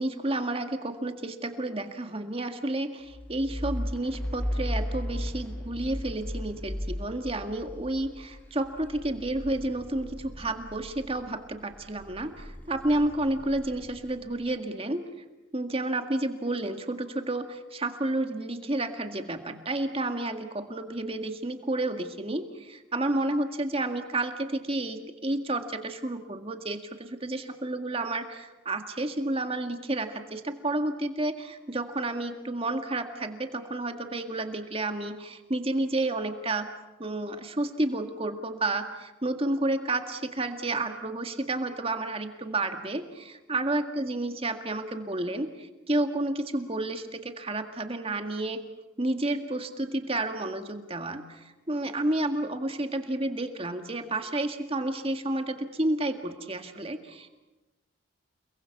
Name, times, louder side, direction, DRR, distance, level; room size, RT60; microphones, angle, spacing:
voice 1, 0.0-15.0 15.5-36.7 37.0-48.7 49.0-57.3, right 2 dB, 25° right, 6 dB, 1.8 m, -31 dB
sound 1, 3.1-11.3 11.7-14.3, equal, 10° left, 0.8 m, -36 dB
30.0 x 21.0 x 7.2 m, 1.1 s
head